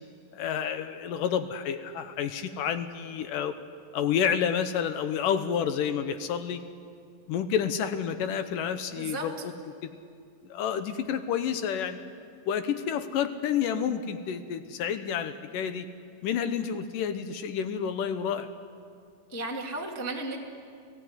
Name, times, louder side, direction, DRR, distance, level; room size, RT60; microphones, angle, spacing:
voice 1, 0.3-3.5 3.9-6.6 7.3-9.5 9.8-9.9 10.4-12.0 12.5-15.9 16.2-18.5, left 8 dB, 70° left, 10 dB, 2.4 m, -29 dB
voice 2, 19.3-20.4, right 2 dB, 20° left, 0 dB, 0.4 m, -34 dB
30.0 x 17.0 x 9.5 m, 2.3 s
omnidirectional pair, 4.3 m